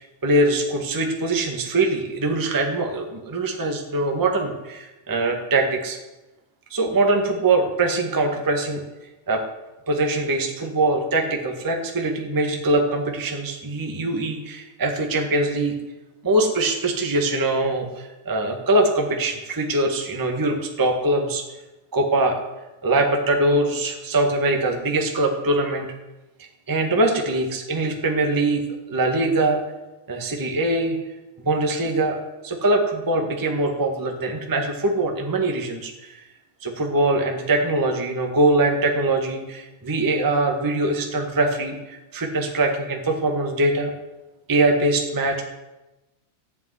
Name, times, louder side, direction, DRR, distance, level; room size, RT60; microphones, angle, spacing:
voice 1, 0.2-6.0 6.7-8.8 9.3-9.4 9.9-15.7 16.2-21.4 21.9-22.4 22.8-25.9 26.7-28.6 28.9-29.6 30.1-31.0 31.4-32.2 32.4-36.1 36.6-43.9 44.5-45.4, right 2 dB, 15° right, 2 dB, 0.8 m, -22 dB
15.0 x 7.0 x 9.7 m, 1.0 s
omnidirectional pair, 3.7 m